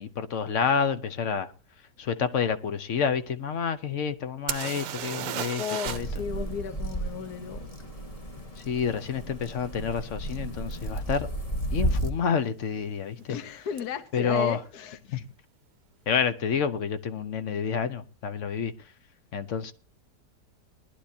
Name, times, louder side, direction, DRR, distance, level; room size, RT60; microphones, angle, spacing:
voice 1, 0.0-1.5 2.0-6.1 8.6-11.3 11.7-13.4 14.1-14.6 15.1-15.2 16.1-18.7 19.3-19.7, left 7 dB, 55° left, 1.0 m, -29 dB
sound 1, 4.5-6.2 6.5-6.6 10.0-10.1 10.7-10.9 11.1-11.7 13.8-13.9 14.1-14.2, right 10 dB, 80° right, 1.4 m, -34 dB
voice 2, 5.6-7.6 13.3-15.2, left 7 dB, 70° left, 1.5 m, -35 dB
sound 2, 5.9-12.1, right 1 dB, 25° left, 1.2 m, -33 dB
20.0 x 11.5 x 2.8 m
omnidirectional pair, 1.8 m